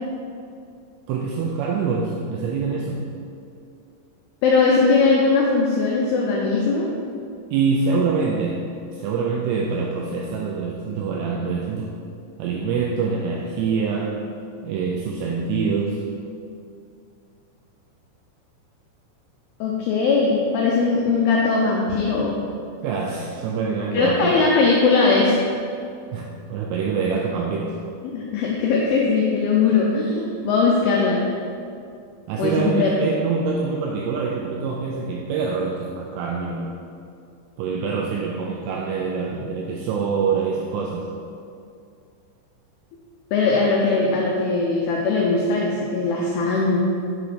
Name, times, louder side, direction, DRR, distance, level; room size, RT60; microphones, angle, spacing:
voice 1, 1.1-3.1 7.5-8.6 8.9-11.9 12.4-14.2 14.6-16.0 22.8-24.4 26.1-27.8 32.3-36.8 37.6-41.1, right 5 dB, 85° right, -1 dB, 2.4 m, -25 dB
voice 2, 4.4-6.9 19.6-22.4 23.9-25.4 28.0-31.2 32.4-32.9 43.3-46.8, left 4 dB, 90° left, -3 dB, 2.3 m, -20 dB
7.1 x 3.9 x 4.9 m, 2.4 s
omnidirectional pair, 5.4 m